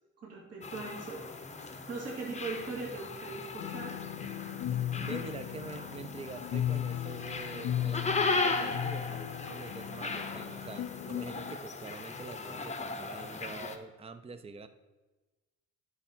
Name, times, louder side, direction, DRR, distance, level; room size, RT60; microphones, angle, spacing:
voice 1, 0.2-1.2 1.5-4.0, right 3 dB, 55° right, -4 dB, 2.4 m, -40 dB
sound 1, 0.6-13.8, left 3 dB, 25° left, 0.8 m, -37 dB
sound 2, 3.6-11.6, left 11 dB, 60° left, 0.5 m, -37 dB
voice 2, 5.0-14.7, right 4 dB, 20° right, 11 dB, 0.5 m, -45 dB
9.6 x 6.2 x 4.4 m, 1.2 s
cardioid pair, 90°, 30 cm